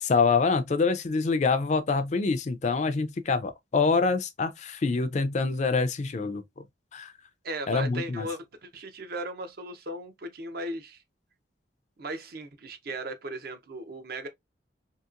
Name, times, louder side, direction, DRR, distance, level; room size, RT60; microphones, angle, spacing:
voice 1, 0.0-6.4 6.9-7.1 7.7-8.3, left 4 dB, 40° left, 0.4 m, -25 dB
voice 2, 7.4-11.0 12.0-14.3, right 1 dB, 55° right, 0.6 m, -37 dB
2.8 x 2.8 x 2.3 m
head